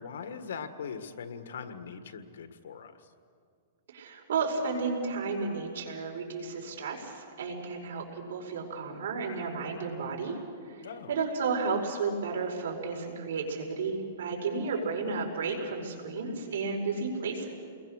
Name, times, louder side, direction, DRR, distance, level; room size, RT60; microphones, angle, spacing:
voice 1, 0.0-3.1 10.8-11.2, left 6 dB, 80° left, 9 dB, 1.8 m, -41 dB
voice 2, 3.9-10.4 10.7-10.8 11.1-17.5, right 4 dB, 70° right, 1 dB, 5.1 m, -32 dB
29.0 x 21.5 x 6.6 m, 2.2 s
hypercardioid pair, 165°, 0 cm